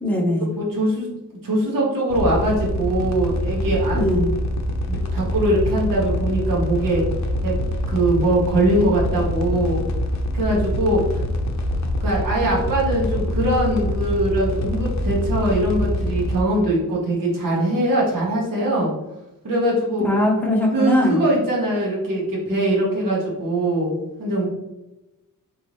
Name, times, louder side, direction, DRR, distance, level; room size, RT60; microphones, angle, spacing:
voice 1, 0.0-0.5 3.9-4.3 20.0-21.2, left 1 dB, 5° left, -4 dB, 1.0 m, -20 dB
voice 2, 0.6-1.1 1.4-4.0 4.9-7.0 7.4-9.8 10.3-11.0 12.0-18.9 19.4-20.1 20.7-24.5, right 1 dB, 70° right, -3 dB, 1.3 m, -22 dB
sound 1, 2.1-16.4, left 1 dB, 55° left, 0.6 m, -25 dB
4.0 x 3.4 x 3.1 m, 0.99 s
wide cardioid pair, 140°, 34 cm